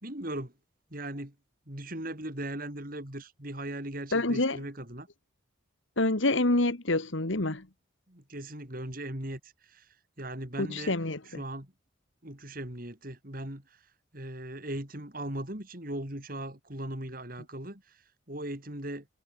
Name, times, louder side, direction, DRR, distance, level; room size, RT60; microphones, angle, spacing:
voice 1, 0.0-0.5 0.9-1.4 1.7-5.1 8.1-11.0 11.2-11.7 12.2-19.1, right 1 dB, 45° right, 3.8 m, -39 dB
voice 2, 4.1-4.6 6.0-7.7 10.6-11.2, left 2 dB, 70° left, 2.0 m, -27 dB
head